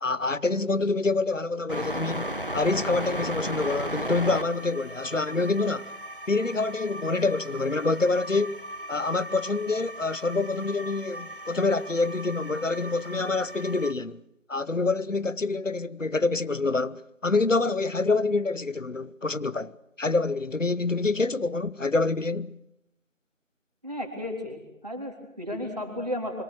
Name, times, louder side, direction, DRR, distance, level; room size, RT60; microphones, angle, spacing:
voice 1, 0.0-5.9 6.3-8.6 8.9-14.2 14.5-19.7 20.0-22.6, left 3 dB, 70° left, 1.1 m, -26 dB
sound 1, 1.7-13.9, equal, 40° left, 1.1 m, -36 dB
voice 2, 23.8-26.4, left 1 dB, 30° right, 3.8 m, -34 dB
26.5 x 24.5 x 6.4 m
figure-of-eight pair, 180°, 40 cm